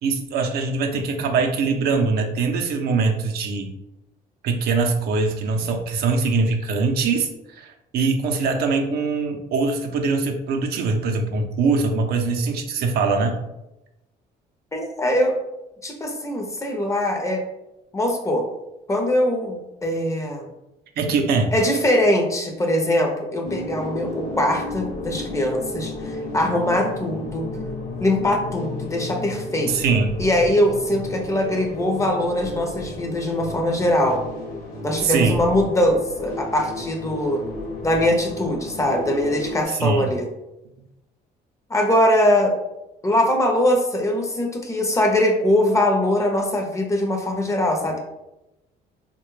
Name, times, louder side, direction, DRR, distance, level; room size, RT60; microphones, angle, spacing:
voice 1, 0.0-3.7 4.4-13.4 21.0-21.5 29.7-30.2 35.0-35.5 39.7-40.1, right 4 dB, 70° right, 4 dB, 0.5 m, -22 dB
voice 2, 14.7-15.3 15.8-17.4 17.9-18.4 18.9-20.5 21.5-27.4 28.0-29.7 30.2-34.2 34.8-37.4 37.8-40.3 41.7-42.5 43.0-48.0, left 1 dB, 20° left, 2 dB, 0.6 m, -22 dB
sound 1, 23.4-39.7, left 2 dB, 45° left, 0.9 m, -33 dB
3.1 x 2.2 x 3.1 m, 0.93 s
cardioid pair, 110°, 17 cm